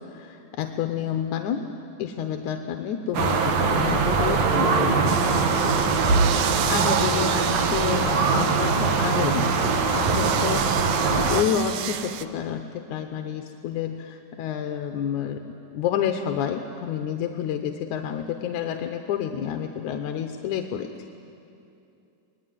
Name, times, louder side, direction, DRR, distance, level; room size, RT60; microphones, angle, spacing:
voice 1, 0.0-1.7 2.0-5.9 6.4-15.4 15.7-20.9, left 8 dB, 70° left, 5 dB, 2.0 m, -29 dB
sound 1, 3.1-11.4, right 4 dB, 60° right, 2.2 m, -22 dB
sound 2, 5.1-12.2, right 12 dB, 75° right, 2.1 m, -33 dB
25.5 x 20.0 x 9.4 m, 2.7 s
omnidirectional pair, 4.1 m